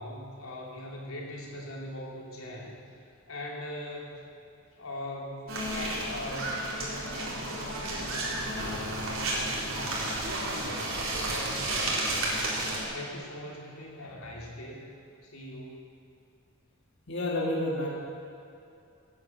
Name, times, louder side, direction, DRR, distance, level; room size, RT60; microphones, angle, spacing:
voice 1, 0.0-4.2 4.7-12.5 12.9-14.9 15.2-15.9, left 1 dB, 85° left, -2 dB, 3.2 m, -41 dB
sound 1, 5.5-12.8, right 1 dB, 70° right, 4.0 m, -32 dB
voice 2, 17.1-17.9, left 1 dB, 55° left, -4 dB, 2.7 m, -29 dB
18.0 x 9.7 x 8.2 m, 2.6 s
head